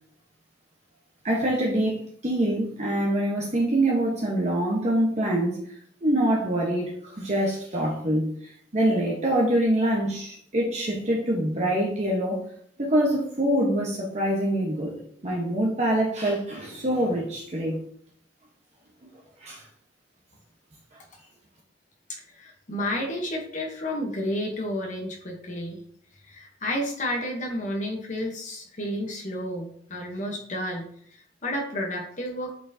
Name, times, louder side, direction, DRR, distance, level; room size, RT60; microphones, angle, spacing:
voice 1, 1.2-5.6 6.0-12.5 12.8-15.0 15.2-17.8 19.4-19.6, right 1 dB, 35° right, -3 dB, 1.0 m, -25 dB
voice 2, 22.1-25.8 26.2-32.5, left 1 dB, 40° left, 0 dB, 0.9 m, -31 dB
8.5 x 4.4 x 2.7 m, 0.62 s
head